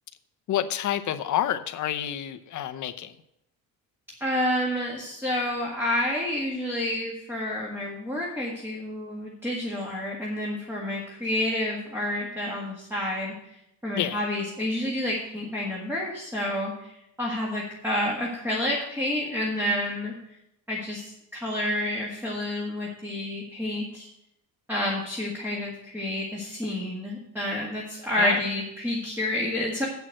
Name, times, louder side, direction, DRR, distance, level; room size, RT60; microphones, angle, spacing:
voice 1, 0.5-3.1 13.9-14.2 28.2-28.4, left 11 dB, 50° left, 9 dB, 0.7 m, -28 dB
voice 2, 4.2-13.3 13.8-20.1 20.7-24.1 24.7-29.9, left 1 dB, 5° right, -4 dB, 1.8 m, -29 dB
8.0 x 6.2 x 7.5 m, 0.82 s
cardioid pair, 140°, 39 cm